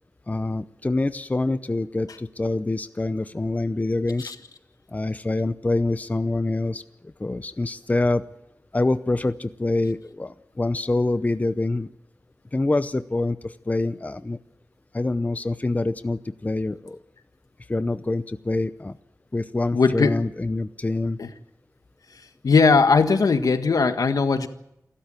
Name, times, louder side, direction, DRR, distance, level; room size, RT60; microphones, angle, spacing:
voice 1, 0.3-4.3 4.9-8.2 8.7-11.9 12.5-14.4 14.9-17.0 17.7-19.0 19.3-21.2, left 2 dB, 25° left, 12 dB, 0.7 m, -25 dB
voice 2, 19.7-20.1 21.2-21.3 22.4-24.5, left 4 dB, 75° left, 9 dB, 1.6 m, -19 dB
28.0 x 13.0 x 9.0 m, 0.83 s
wide cardioid pair, 90°, 6 cm